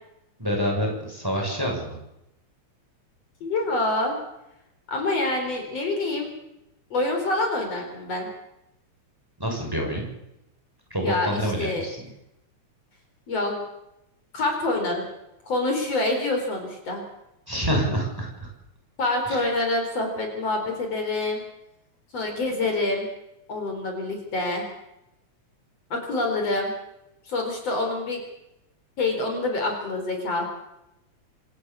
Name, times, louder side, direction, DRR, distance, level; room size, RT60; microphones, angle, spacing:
voice 1, 0.4-2.0 9.4-10.1 10.9-12.0 17.5-18.5 19.3-19.4, equal, 5° right, 0 dB, 6.2 m, -27 dB
voice 2, 3.4-4.1 4.9-6.3 6.9-8.3 11.0-11.8 13.3-13.6 14.3-15.1 15.5-17.0 19.0-21.4 22.1-23.1 23.5-24.7 25.9-26.7 27.3-28.2 29.0-30.4, left 2 dB, 55° left, 3 dB, 5.2 m, -26 dB
26.5 x 13.5 x 8.6 m, 0.86 s
omnidirectional pair, 3.3 m